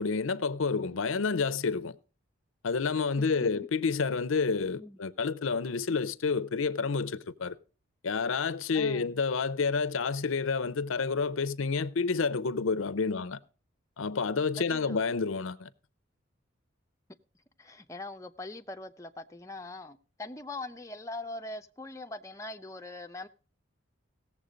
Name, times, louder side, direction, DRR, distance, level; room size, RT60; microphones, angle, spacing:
voice 1, 0.0-1.9 2.6-7.6 8.0-13.4 14.0-15.7, left 4 dB, 85° left, 0.6 m, -29 dB
voice 2, 3.2-3.7 4.8-5.0 8.7-9.1 13.1-13.3 14.7-15.0 17.6-23.3, left 2 dB, 15° left, 0.6 m, -42 dB
17.5 x 7.3 x 5.0 m
head